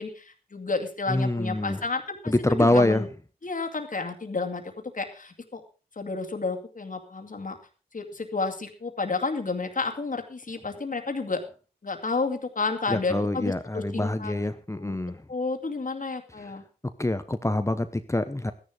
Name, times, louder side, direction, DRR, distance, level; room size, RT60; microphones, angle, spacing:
voice 1, 0.0-3.1 3.4-5.6 6.0-7.6 7.9-11.4 11.8-14.5 14.8-15.0 15.3-16.6, left 3 dB, 60° left, 4 dB, 2.3 m, -31 dB
voice 2, 1.1-1.8 2.3-3.0 12.9-15.2 16.4-16.5 17.0-18.5, left 1 dB, 20° left, 10 dB, 1.0 m, -25 dB
13.5 x 11.0 x 5.1 m, 0.37 s
cardioid pair, 45°, 15 cm